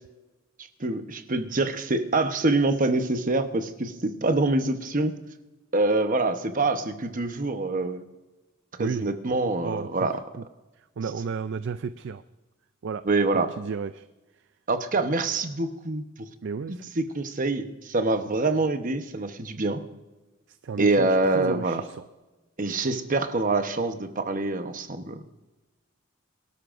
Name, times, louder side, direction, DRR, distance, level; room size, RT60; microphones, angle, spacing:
voice 1, 0.8-5.2 5.7-8.0 8.8-10.2 13.1-13.5 14.7-16.0 16.7-19.8 20.8-21.8 22.6-25.2, right 2 dB, 40° right, 7 dB, 1.0 m, -25 dB
voice 2, 9.6-10.1 10.4-10.5 10.8-12.2 12.8-13.0 13.3-14.1 16.4-16.9 20.5-22.0, right 5 dB, 60° right, 12 dB, 0.4 m, -33 dB
23.5 x 12.5 x 2.6 m, 1.1 s
head